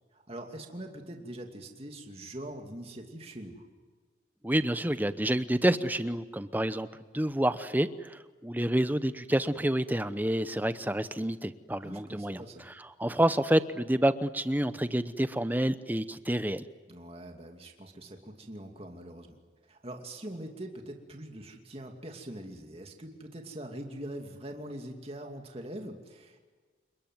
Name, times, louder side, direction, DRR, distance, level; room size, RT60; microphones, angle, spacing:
voice 1, 0.1-3.7 11.8-12.7 16.9-26.4, right 1 dB, 30° right, 3 dB, 2.6 m, -43 dB
voice 2, 4.4-6.9 7.1-12.4 13.0-16.7, right 1 dB, 10° right, 13 dB, 0.8 m, -28 dB
29.5 x 21.0 x 9.4 m, 1.4 s
head